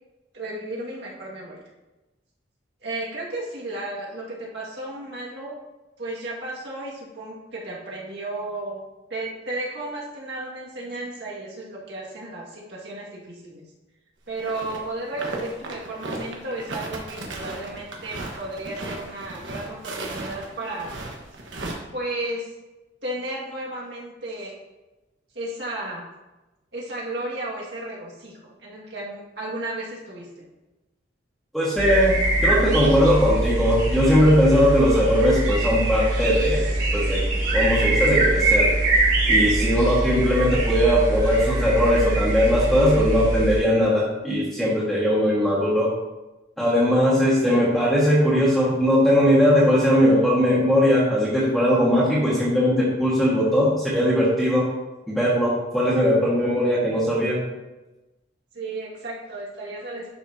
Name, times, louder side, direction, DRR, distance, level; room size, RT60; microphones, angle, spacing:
voice 1, 0.3-1.6 2.8-5.5 6.0-8.8 9.1-13.6 14.3-20.9 21.9-22.5 23.0-24.5 25.3-26.0 26.7-30.4 47.4-47.6 58.5-60.1, right 2 dB, 65° right, -4 dB, 1.9 m, -33 dB
sound 1, 14.4-14.8 15.0-21.7, right 2 dB, 85° right, 1.3 m, -35 dB
voice 2, 31.5-32.1 32.4-36.6 36.9-37.2 37.5-38.7 39.3-45.9 46.6-54.7 55.1-57.4, equal, ahead, -8 dB, 1.5 m, -19 dB
sound 2, 31.8-43.6, right 2 dB, 40° right, 2.3 m, -23 dB
11.0 x 5.7 x 2.8 m, 1.1 s
head